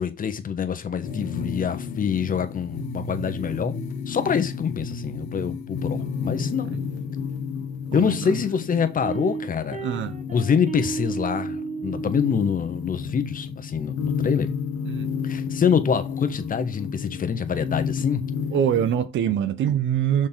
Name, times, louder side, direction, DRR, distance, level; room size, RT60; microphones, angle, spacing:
voice 1, 0.0-3.8 4.1-6.8 7.9-9.8 10.3-14.5 15.2-18.2, left 7 dB, 45° left, 1.1 m, -25 dB
sound 1, 1.0-19.0, left 6 dB, 90° left, 1.2 m, -32 dB
voice 2, 7.9-8.4 9.8-10.2 14.8-15.1 18.5-20.3, right 9 dB, 70° right, 0.9 m, -24 dB
sound 2, 9.0-12.5, right 5 dB, 35° right, 1.3 m, -32 dB
6.2 x 4.3 x 3.8 m
cardioid pair, 90°, 20 cm